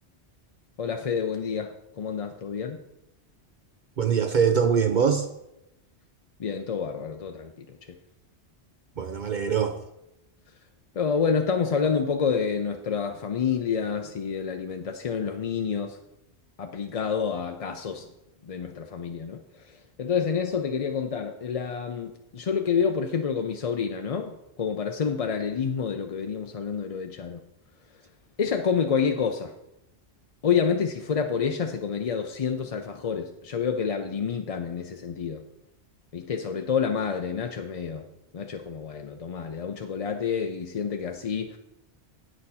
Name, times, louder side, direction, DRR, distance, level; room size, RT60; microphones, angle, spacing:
voice 1, 0.8-2.8 6.4-7.8 11.0-16.0 16.6-18.1 18.4-19.4 19.7-27.4 28.4-29.5 30.4-35.4 36.1-38.0 38.3-41.6, left 6 dB, 45° left, 5 dB, 0.5 m, -28 dB
voice 2, 4.0-5.3 9.0-9.8, right 7 dB, 55° right, 8 dB, 0.6 m, -23 dB
8.8 x 6.6 x 5.5 m, 0.87 s
omnidirectional pair, 1.2 m